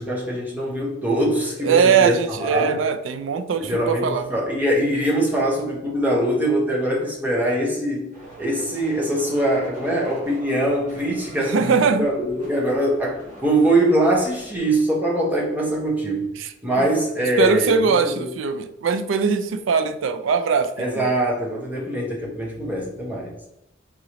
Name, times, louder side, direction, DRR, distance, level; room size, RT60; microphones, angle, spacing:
voice 1, 0.0-2.7 3.5-11.7 12.0-16.3 16.6-17.7 18.0-18.3 20.8-23.4, right 1 dB, 10° right, -3 dB, 0.9 m, -23 dB
voice 2, 1.6-4.3 11.4-12.1 16.4-16.8 17.4-21.1, right 5 dB, 80° right, 9 dB, 0.4 m, -21 dB
sound 1, 8.1-14.8, right 1 dB, 40° right, 1.3 m, -43 dB
3.8 x 3.0 x 2.9 m, 0.85 s
head